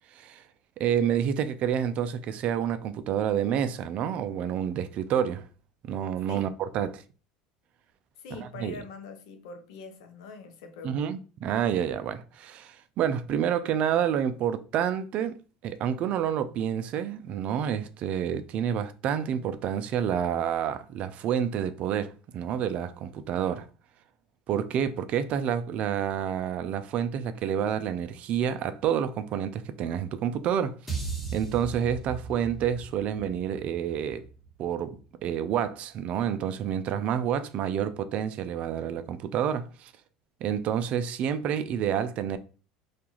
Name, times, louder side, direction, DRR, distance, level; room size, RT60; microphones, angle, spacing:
voice 1, 0.1-0.4 0.8-5.4 5.8-7.0 8.4-8.8 10.8-15.4 15.6-23.7 24.5-30.8 31.3-34.3 34.6-39.9 40.4-42.4, right 9 dB, 55° right, 0.3 m, -29 dB
voice 2, 8.2-11.0, left 5 dB, 80° left, 0.6 m, -43 dB
sound 1, 30.9-35.2, right 5 dB, ahead, 1.1 m, -38 dB
2.4 x 2.3 x 2.9 m
supercardioid pair, 90°, 3 cm